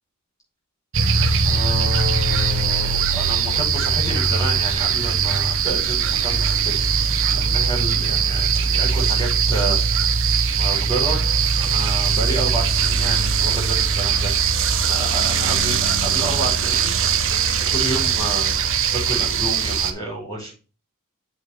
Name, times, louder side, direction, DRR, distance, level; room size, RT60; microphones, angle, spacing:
sound 1, 0.9-19.9, right 6 dB, 60° right, 1.0 m, -20 dB
voice 1, 1.4-9.8 10.6-11.2 11.6-14.5 14.8-17.0 17.5-20.5, right 2 dB, 15° left, -4 dB, 5.5 m, -30 dB
7.5 x 6.2 x 4.3 m, 0.34 s
head